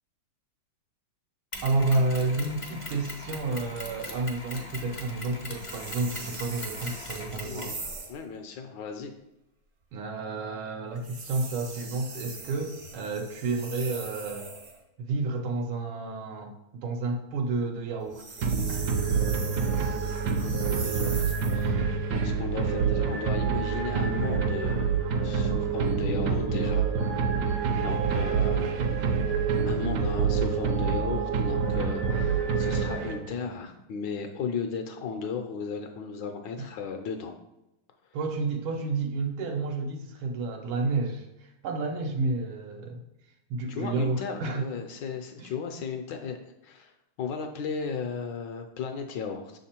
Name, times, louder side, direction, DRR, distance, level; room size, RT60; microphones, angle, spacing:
Mechanisms, 1.5-7.8, left 2 dB, 55° left, 0.3 m, -40 dB
voice 1, 1.6-7.7 9.9-14.5 15.0-18.2 18.7-18.8 27.7-27.9 36.6-36.7 38.1-43.0 43.5-44.6 45.4-45.5, right 3 dB, 85° right, 2 dB, 1.6 m, -30 dB
sound 1, 5.5-8.2 11.0-14.8 18.0-21.7, right 4 dB, 55° right, 0.7 m, -41 dB
voice 2, 7.5-7.8 8.1-9.1 20.2-25.0 25.2-26.9 27.8-28.8 29.7-37.3 43.7-46.9 47.2-49.6, left 5 dB, 70° left, 5 dB, 1.2 m, -35 dB
sound 2, 18.4-33.5, right 5 dB, 70° right, 1.1 m, -27 dB
6.5 x 3.6 x 4.3 m, 0.91 s
omnidirectional pair, 2.2 m